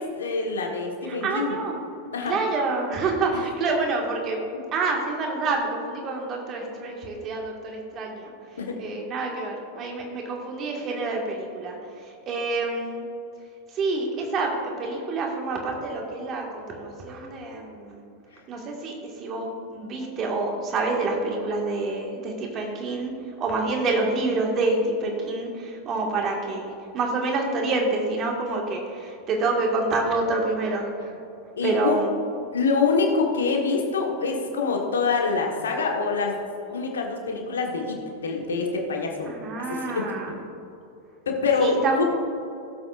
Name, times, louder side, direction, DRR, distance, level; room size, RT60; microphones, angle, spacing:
voice 1, 0.0-1.6 2.1-2.4 4.5-4.6 8.6-8.8 18.3-18.4 31.0-31.1 31.6-32.0 32.5-36.4 36.7-40.4 41.2-42.0, left 4 dB, 65° left, 1 dB, 1.5 m, -25 dB
voice 2, 1.1-1.8 2.3-4.4 4.7-8.3 8.8-11.8 12.0-13.0 13.7-18.0 18.5-23.1 23.4-31.1 31.6-32.1 33.7-34.0 39.3-40.4 41.6-42.0, right 3 dB, 30° right, 0 dB, 1.9 m, -27 dB
16.5 x 7.8 x 2.6 m, 2.8 s
figure-of-eight pair, 90°, 0 cm